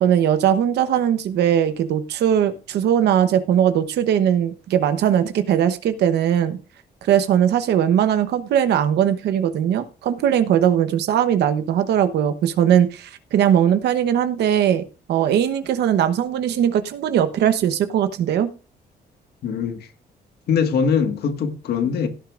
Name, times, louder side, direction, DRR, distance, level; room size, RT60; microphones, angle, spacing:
voice 1, 0.0-6.6 7.0-18.5, right 9 dB, 85° right, 1.0 m, -19 dB
voice 2, 19.4-19.9 20.5-22.1, left 6 dB, 75° left, 1.7 m, -22 dB
17.0 x 9.2 x 2.5 m
cardioid pair, 115°, 17 cm